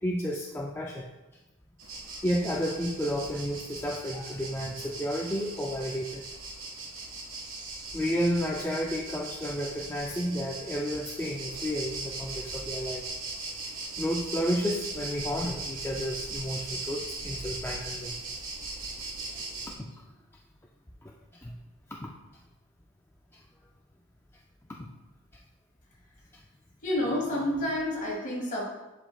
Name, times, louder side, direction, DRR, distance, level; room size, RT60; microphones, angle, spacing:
voice 1, 0.0-1.0 2.2-6.2 7.9-13.0 14.0-18.2 19.3-20.0 21.0-21.1 21.4-21.6 22.0-22.1 24.7-24.9, equal, 10° left, -2 dB, 0.4 m, -32 dB
sound 1, 1.8-19.7, right 3 dB, 60° right, 1.5 m, -39 dB
voice 2, 26.8-28.6, left 1 dB, 35° left, -4 dB, 2.4 m, -29 dB
11.0 x 5.0 x 2.4 m, 1.1 s
head